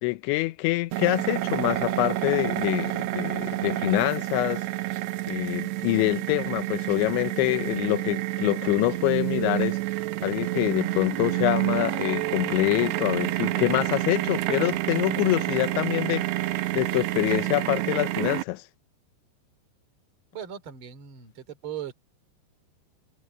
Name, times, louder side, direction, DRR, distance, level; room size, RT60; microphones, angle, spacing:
voice 1, 0.0-4.7 5.3-9.8 10.2-18.6, left 20 dB, 90° left, 3.1 m, -26 dB
sound 1, 0.9-18.4, right 17 dB, 80° right, 2.8 m, -29 dB
voice 2, 20.3-21.9, right 10 dB, 30° right, 3.2 m, -38 dB
omnidirectional pair, 5.2 m